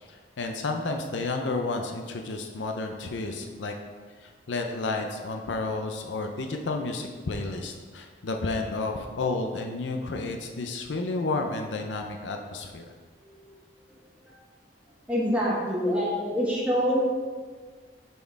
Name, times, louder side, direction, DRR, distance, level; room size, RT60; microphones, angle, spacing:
voice 1, 0.1-3.7 4.2-12.8, left 3 dB, 85° left, 4 dB, 0.6 m, -31 dB
voice 2, 13.2-13.6 13.9-14.0 14.2-14.4 15.1-17.0, equal, 5° right, -7 dB, 1.2 m, -26 dB
6.7 x 4.4 x 4.6 m, 1.6 s
head